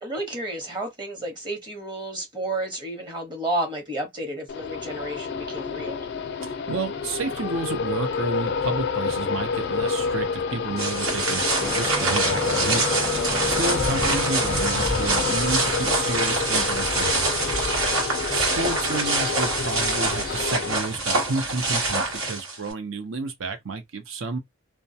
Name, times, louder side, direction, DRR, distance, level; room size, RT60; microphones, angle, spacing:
voice 1, 0.0-6.0, right 1 dB, 20° right, 0.9 m, -31 dB
sound 1, 4.5-20.7, left 5 dB, 55° left, 0.4 m, -29 dB
voice 2, 6.4-13.0 13.5-17.6 18.3-24.4, right 3 dB, 70° right, 0.7 m, -31 dB
sound 2, 10.8-22.7, right 3 dB, 85° right, 1.2 m, -25 dB
sound 3, 11.6-17.5, left 1 dB, 5° left, 0.5 m, -33 dB
2.2 x 2.2 x 2.7 m
head